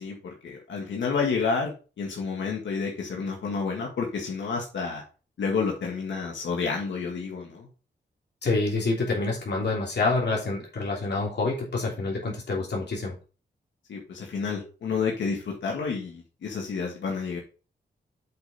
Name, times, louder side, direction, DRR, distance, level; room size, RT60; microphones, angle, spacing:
voice 1, 0.0-5.0 5.4-7.7 13.9-17.4, left 5 dB, 85° left, -1 dB, 1.9 m, -30 dB
voice 2, 8.4-13.1, left 3 dB, 65° left, -2 dB, 3.0 m, -27 dB
7.9 x 5.3 x 4.2 m, 0.34 s
cardioid pair, 70°, 19 cm